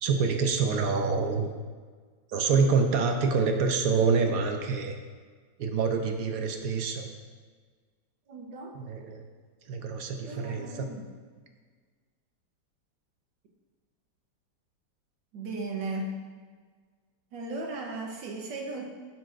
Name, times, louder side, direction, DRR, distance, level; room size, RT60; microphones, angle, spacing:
voice 1, 0.0-1.5 2.3-4.9 5.6-7.1 8.8-9.2 9.7-10.9, right 5 dB, 65° right, 4 dB, 1.0 m, -26 dB
voice 2, 8.3-8.7 10.3-11.1 15.3-16.2 17.3-18.8, right 2 dB, 85° right, 1 dB, 1.7 m, -36 dB
12.0 x 5.8 x 2.6 m, 1.5 s
omnidirectional pair, 1.9 m